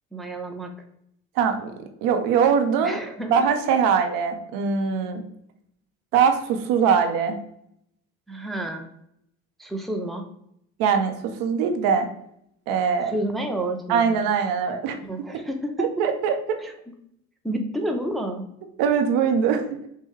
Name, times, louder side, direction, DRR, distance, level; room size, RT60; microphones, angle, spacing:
voice 1, 0.1-0.7 2.8-3.4 8.3-8.9 9.6-10.2 13.1-14.2 15.0-15.9 16.6-16.7 17.4-18.4, right 1 dB, ahead, 3 dB, 0.6 m, -30 dB
voice 2, 1.4-1.7 2.0-3.0 3.3-5.2 6.1-7.4 10.8-12.1 12.7-13.1 13.9-15.0 15.8-16.6 18.8-19.9, right 6 dB, 55° right, 6 dB, 0.7 m, -22 dB
6.0 x 2.2 x 3.3 m, 0.74 s
figure-of-eight pair, 55°, 41 cm